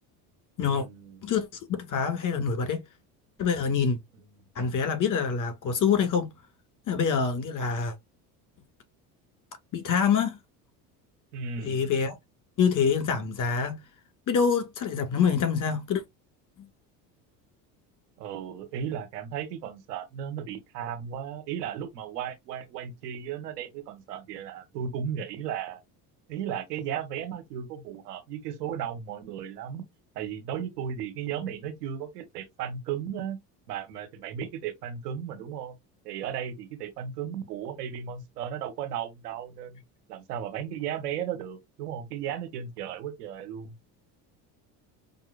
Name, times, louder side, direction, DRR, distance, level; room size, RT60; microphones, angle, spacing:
voice 1, 0.6-1.2 11.3-11.9 18.2-25.8 26.3-29.8 30.1-33.4 33.7-35.8 36.0-39.8 40.1-43.7, right 8 dB, 85° right, 1.4 m, -35 dB
voice 2, 1.2-2.8 3.4-4.0 4.6-6.3 6.9-7.9 9.7-10.4 11.6-12.1 12.6-13.8 14.3-16.0, left 6 dB, 40° left, 1.9 m, -26 dB
5.5 x 2.8 x 2.4 m
hypercardioid pair, 75°, 46 cm